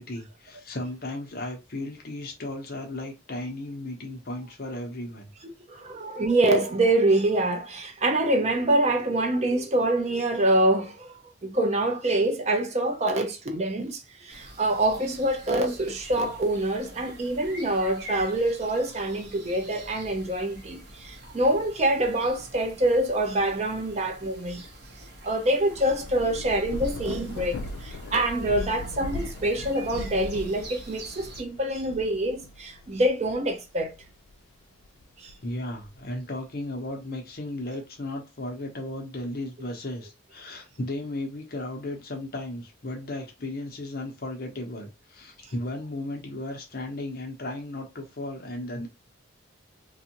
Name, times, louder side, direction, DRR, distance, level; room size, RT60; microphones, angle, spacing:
voice 1, 0.0-5.3 35.4-48.9, left 1 dB, 50° left, 0.7 m, -35 dB
voice 2, 5.7-11.1 11.4-24.7 25.2-33.9 35.2-35.3 45.4-45.5, right 1 dB, 35° right, 0.5 m, -25 dB
sound 1, 14.3-31.4, right 1 dB, 50° right, 0.9 m, -46 dB
Thunder / Rain, 25.4-34.3 34.8-36.2, left 2 dB, 90° left, 0.4 m, -39 dB
2.6 x 2.4 x 2.8 m
head